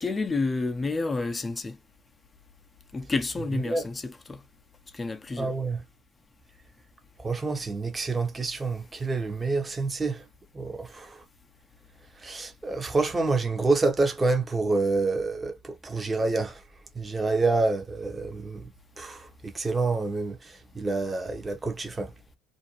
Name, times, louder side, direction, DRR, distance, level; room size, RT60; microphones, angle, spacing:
voice 1, 0.0-1.8 2.9-4.4 4.9-5.5, left 3 dB, 20° left, 0.6 m, -30 dB
voice 2, 3.5-3.9 5.4-5.8 7.2-10.2 10.5-11.2 12.2-16.6 16.9-18.7 19.0-22.1, right 3 dB, 20° right, 0.9 m, -28 dB
2.6 x 2.1 x 2.9 m
supercardioid pair, 85°, 0 cm